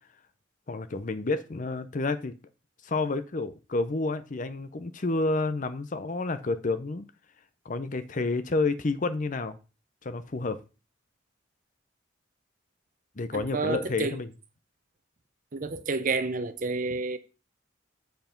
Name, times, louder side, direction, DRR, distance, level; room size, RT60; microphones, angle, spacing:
voice 1, 0.7-2.3 2.8-7.1 7.6-9.6 10.0-10.6 13.2-14.3, left 3 dB, 40° left, 0.6 m, -29 dB
voice 2, 13.3-14.2 15.5-17.2, right 3 dB, 45° right, 0.7 m, -30 dB
7.8 x 4.8 x 5.1 m
head